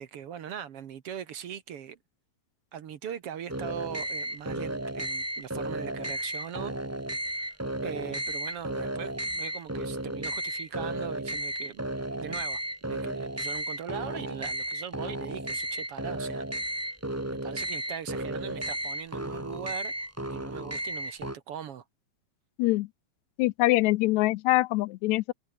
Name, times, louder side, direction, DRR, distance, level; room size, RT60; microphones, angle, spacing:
voice 1, 0.0-2.0 2.7-6.8 7.3-7.5 7.8-11.8 12.1-16.9 17.3-19.9 20.3-21.8, right 9 dB, 60° right, 2.0 m, -40 dB
sound 1, 3.5-21.4, right 1 dB, 10° right, 0.9 m, -34 dB
voice 2, 23.4-25.3, left 19 dB, 80° left, 1.9 m, -24 dB
omnidirectional pair, 3.3 m